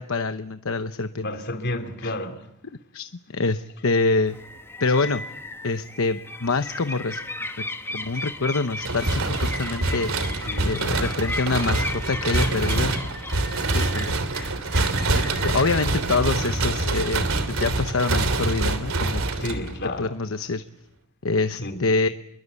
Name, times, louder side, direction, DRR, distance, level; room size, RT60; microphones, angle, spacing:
voice 1, 0.0-1.3 2.0-2.1 2.9-4.4 4.8-5.2 5.6-7.2 7.9-10.1 10.6-12.9 13.7-14.2 15.4-19.2 20.0-20.6 21.2-22.1, left 3 dB, 75° left, 1.0 m, -25 dB
voice 2, 1.2-2.5 10.5-10.8 19.4-20.1 21.6-21.8, left 1 dB, 55° left, 3.0 m, -31 dB
sound 1, 4.3-16.7, left 2 dB, 10° left, 1.9 m, -36 dB
sound 2, 8.8-20.0, right 2 dB, 80° right, 3.1 m, -25 dB
27.5 x 22.5 x 8.3 m
head